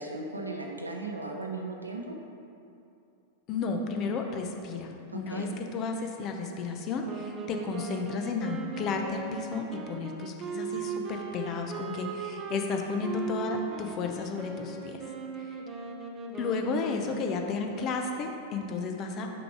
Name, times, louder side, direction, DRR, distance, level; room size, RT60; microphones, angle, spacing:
voice 1, 0.0-2.2 5.1-5.6, right 2 dB, 80° right, 1 dB, 0.7 m, -37 dB
voice 2, 3.5-15.0 15.4-15.6 16.4-19.3, left 4 dB, 35° left, 3 dB, 0.7 m, -33 dB
sound 1, 7.0-17.4, right 5 dB, 25° right, 0.7 m, -38 dB
6.2 x 4.8 x 4.7 m, 2.6 s
figure-of-eight pair, 95°, 0 cm